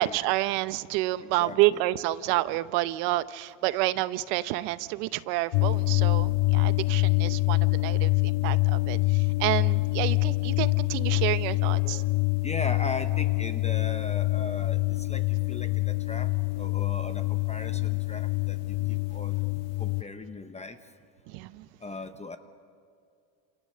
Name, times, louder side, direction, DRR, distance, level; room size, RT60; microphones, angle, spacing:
voice 1, 0.0-12.0 21.3-21.6, right 17 dB, 85° right, 15 dB, 1.0 m, -29 dB
voice 2, 1.2-1.8 11.7-19.5 19.8-20.8 21.8-22.4, left 3 dB, 15° left, 8 dB, 0.8 m, -39 dB
sound 1, 5.5-20.0, left 24 dB, 70° left, 0.8 m, -26 dB
28.5 x 27.5 x 6.7 m, 2.3 s
cardioid pair, 140°, 48 cm